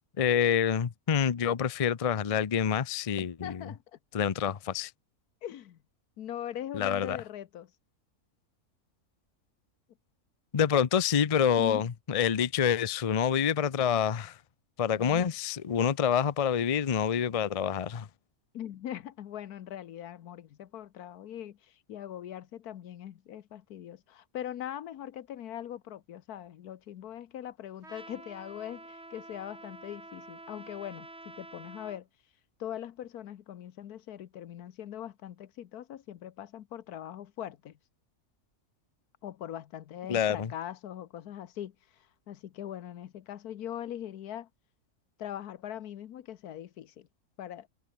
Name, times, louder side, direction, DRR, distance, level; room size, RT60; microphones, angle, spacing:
voice 1, 0.2-3.7 4.1-4.9 6.7-7.2 10.5-14.4 14.8-18.1 40.1-40.5, left 8 dB, 40° left, 0.5 m, -27 dB
voice 2, 3.2-4.0 5.4-5.8 6.2-7.7 11.6-11.9 18.5-21.6 21.9-32.1 32.6-37.7 39.2-41.7 42.3-44.5 45.2-47.1 47.4-47.7, left 11 dB, 85° left, 1.4 m, -41 dB
Trumpet, 27.8-32.0, right 2 dB, 45° right, 5.8 m, -48 dB
omnidirectional pair, 1.6 m